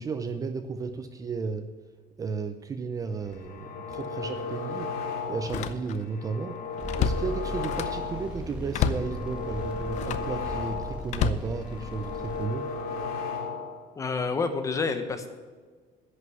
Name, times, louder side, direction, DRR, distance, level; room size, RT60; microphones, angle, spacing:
voice 1, 0.0-1.7 2.2-4.9 5.3-6.6 7.0-12.7, right 4 dB, 20° right, 8 dB, 0.5 m, -33 dB
Slam, 3.2-3.5 3.9-4.1 5.4-6.2 6.5-8.1 8.7-9.2 9.9-10.4 11.1-12.2 12.8-13.1, left 8 dB, 45° left, 0.7 m, -30 dB
sound 1, 3.3-5.6 6.0-8.4 8.7-11.1 11.4-13.8, left 4 dB, 75° left, 2.6 m, -35 dB
sound 2, 6.8-12.4, left 1 dB, 5° right, 1.8 m, -38 dB
voice 2, 14.0-15.3, left 4 dB, 20° left, 8 dB, 1.0 m, -28 dB
10.5 x 6.5 x 9.1 m, 1.5 s
cardioid pair, 170°, 16 cm